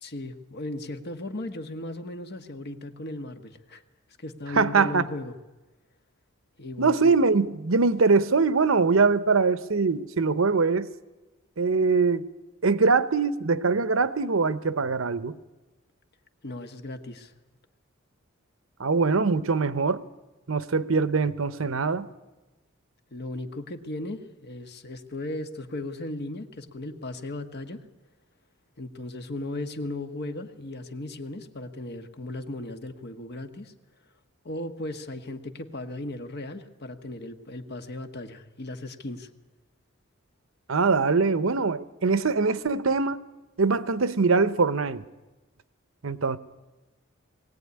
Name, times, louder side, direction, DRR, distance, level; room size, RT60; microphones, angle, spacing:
voice 1, 0.0-3.8 4.2-5.3 6.6-7.1 16.4-17.3 23.1-27.8 28.8-33.7 34.4-39.3, left 2 dB, 55° left, 7 dB, 1.5 m, -36 dB
voice 2, 4.5-5.1 6.8-10.9 11.6-12.3 12.6-15.4 18.8-20.0 20.5-22.1 40.7-43.2 43.6-45.0 46.0-46.4, right 4 dB, 75° right, 14 dB, 0.9 m, -23 dB
21.0 x 16.5 x 9.7 m, 1.1 s
head